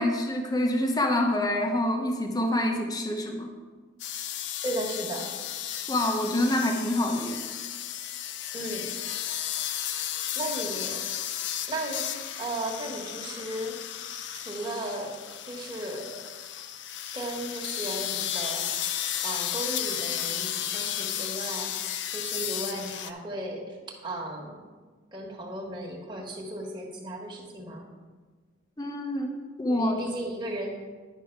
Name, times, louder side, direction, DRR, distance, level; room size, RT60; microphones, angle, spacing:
voice 1, 0.0-3.5 5.9-7.4 28.8-29.3 29.6-30.0, left 1 dB, 20° left, 3 dB, 0.8 m, -26 dB
sound 1, 4.0-23.1, left 10 dB, 60° left, 0.5 m, -34 dB
voice 2, 4.6-5.3 8.5-8.9 10.3-11.0 11.7-12.1 12.4-13.8 14.3-16.2 17.1-18.7 19.2-21.7 22.1-23.8 24.0-24.7 25.1-27.9 29.7-30.7, right 1 dB, 25° right, -2 dB, 1.5 m, -35 dB
10.0 x 6.0 x 4.6 m, 1.4 s
head